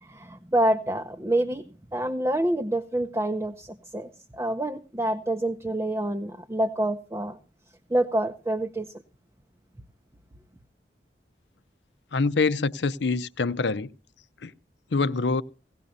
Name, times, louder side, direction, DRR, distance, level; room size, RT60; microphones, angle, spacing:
voice 1, 0.0-7.4 7.9-8.9, right 1 dB, 15° right, 0.6 m, -27 dB
voice 2, 12.1-13.9 14.4-14.5 14.9-15.4, left 4 dB, 80° left, 0.6 m, -25 dB
18.5 x 16.5 x 2.7 m
head